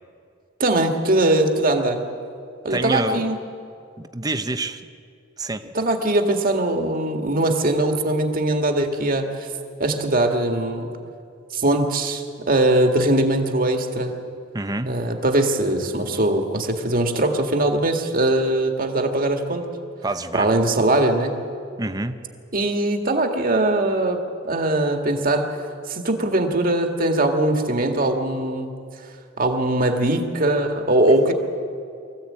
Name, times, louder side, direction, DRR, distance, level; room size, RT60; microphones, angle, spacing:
voice 1, 0.6-2.0 2.6-3.4 5.7-9.5 9.8-10.9 11.5-14.1 14.9-19.7 20.3-21.3 22.5-25.5 25.9-28.7 29.4-31.3, right 1 dB, 45° right, 4 dB, 1.9 m, -21 dB
voice 2, 2.7-3.3 4.0-4.8 5.4-5.6 14.5-14.9 20.0-20.5 21.8-22.2, right 2 dB, 20° right, 8 dB, 0.9 m, -27 dB
24.0 x 15.5 x 8.7 m, 2.4 s
head